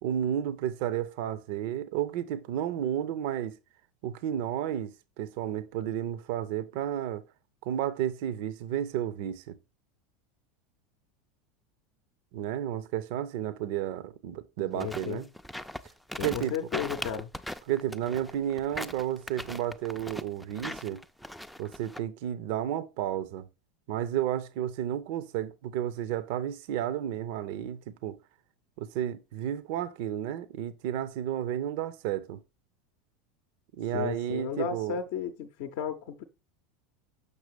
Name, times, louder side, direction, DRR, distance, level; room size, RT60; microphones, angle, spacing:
voice 1, 0.0-3.6 4.0-7.2 7.6-9.6 12.3-15.3 16.2-16.5 17.7-21.0 21.6-23.5 23.9-28.2 28.8-32.4 33.7-35.0, right 10 dB, 55° right, 0.5 m, -32 dB
voice 2, 14.7-15.2 16.2-17.3 33.9-36.2, left 8 dB, 55° left, 0.6 m, -34 dB
sound 1, 14.7-22.0, equal, ahead, 0.4 m, -39 dB
6.7 x 6.0 x 3.3 m
figure-of-eight pair, 80°, 0 cm